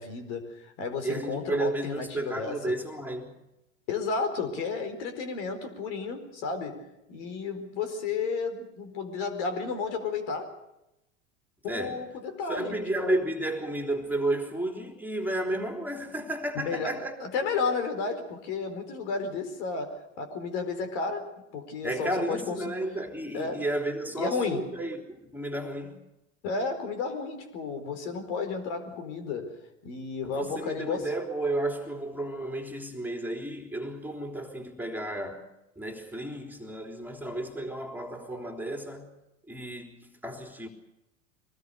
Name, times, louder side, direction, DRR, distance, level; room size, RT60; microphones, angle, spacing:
voice 1, 0.0-2.6 3.9-6.8 7.1-10.5 11.6-13.2 16.5-22.8 23.3-23.6 24.1-24.7 26.4-29.5 29.8-31.1, left 4 dB, 60° left, 4.6 m, -32 dB
voice 2, 1.0-3.3 11.6-12.0 12.5-17.1 21.8-26.0 30.2-35.5 35.8-39.1 39.5-40.7, right 1 dB, 5° right, 3.5 m, -32 dB
24.0 x 20.0 x 6.8 m
hypercardioid pair, 90°, 38 cm